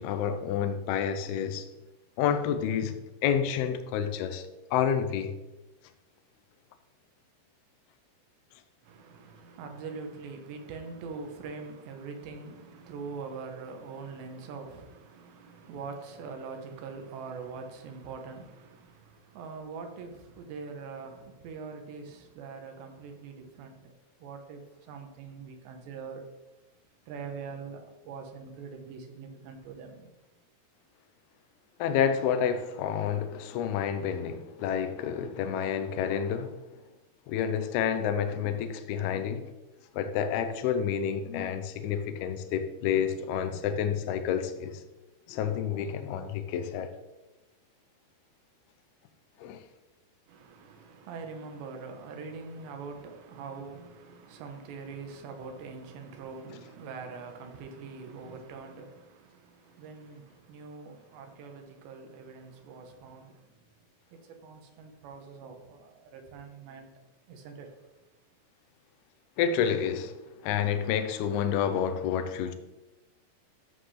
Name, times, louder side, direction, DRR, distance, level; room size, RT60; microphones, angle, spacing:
voice 1, 0.0-1.7 2.2-3.0 3.2-5.3 31.8-36.6 37.3-39.5 39.9-44.8 45.3-46.9 49.4-49.6 69.4-70.2 70.4-72.5, left 8 dB, 80° left, 2.5 m, -29 dB
voice 2, 8.8-23.9 24.2-26.2 27.1-30.1 50.3-63.8 64.1-66.9 67.3-67.8, right 5 dB, 90° right, 3.4 m, -43 dB
13.0 x 7.6 x 3.3 m
omnidirectional pair, 4.8 m